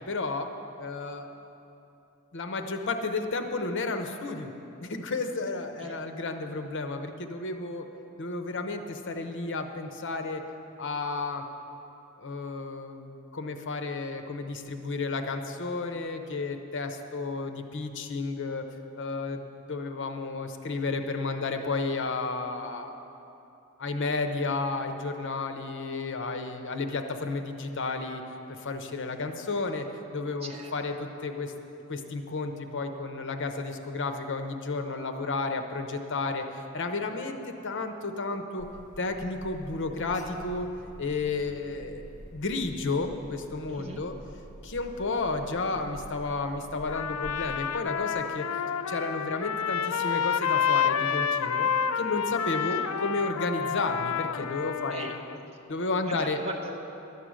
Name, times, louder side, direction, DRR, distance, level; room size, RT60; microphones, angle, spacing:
voice 1, 0.1-0.5 0.8-1.3 2.3-4.5 4.8-7.8 8.2-10.4 10.8-11.4 12.2-18.6 19.0-22.9 23.8-28.2 28.5-29.9 30.1-31.5 31.9-38.7 39.0-40.7 41.0-42.0 42.3-44.1 44.6-48.5 48.9-51.7 51.9-55.1 55.7-56.4, left 3 dB, 60° left, 6 dB, 0.8 m, -32 dB
voice 2, 30.4-30.7 43.7-44.0 52.6-52.9 54.9-55.5 56.1-56.8, right 1 dB, 30° right, 0 dB, 1.0 m, -40 dB
Alarm, 38.6-47.7, equal, 35° left, 1.4 m, -47 dB
Trumpet, 46.9-55.4, left 8 dB, 80° left, 0.4 m, -29 dB
12.0 x 8.6 x 6.3 m, 2.9 s
head